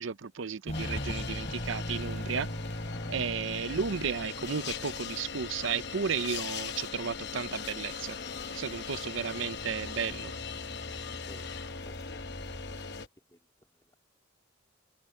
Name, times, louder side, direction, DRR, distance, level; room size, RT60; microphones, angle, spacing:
voice 1, 0.0-2.5 3.1-8.2 8.5-10.4, right 6 dB, 70° right, 0.6 m, -34 dB
sound 1, 0.7-13.1, left 6 dB, 55° left, 0.9 m, -40 dB
Walk footsteps, 0.7-13.1, equal, 35° left, 4.1 m, -42 dB
voice 2, 11.3-11.9 13.3-14.0, equal, 15° left, 3.1 m, -57 dB
head